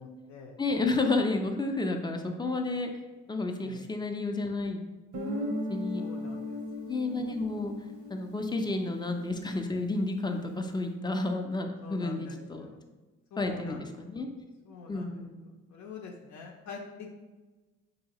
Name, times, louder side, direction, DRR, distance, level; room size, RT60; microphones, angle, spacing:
voice 1, 0.0-0.6 3.6-3.8 6.0-6.6 8.5-8.7 11.8-12.8 13.3-14.1 14.7-15.1 15.4-17.2, left 5 dB, 70° left, 0 dB, 0.5 m, -45 dB
voice 2, 0.6-2.9 3.3-4.8 5.2-6.0 6.8-7.7 8.1-12.7 13.4-14.3 14.9-15.4, left 2 dB, 15° left, 4 dB, 0.3 m, -31 dB
Guitar, 5.1-9.7, left 1 dB, 80° right, 0.7 m, -37 dB
3.9 x 2.7 x 2.8 m, 1.2 s
cardioid pair, 90°, 30 cm